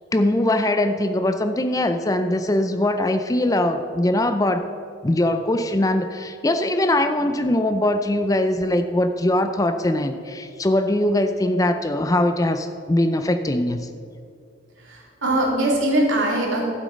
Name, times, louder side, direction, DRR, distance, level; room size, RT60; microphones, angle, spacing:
voice 1, 0.1-4.7 5.0-13.9, left 1 dB, 20° left, 9 dB, 0.4 m, -21 dB
voice 2, 14.8-16.6, right 1 dB, 80° right, -2 dB, 2.6 m, -22 dB
12.5 x 7.7 x 5.2 m, 2.3 s
head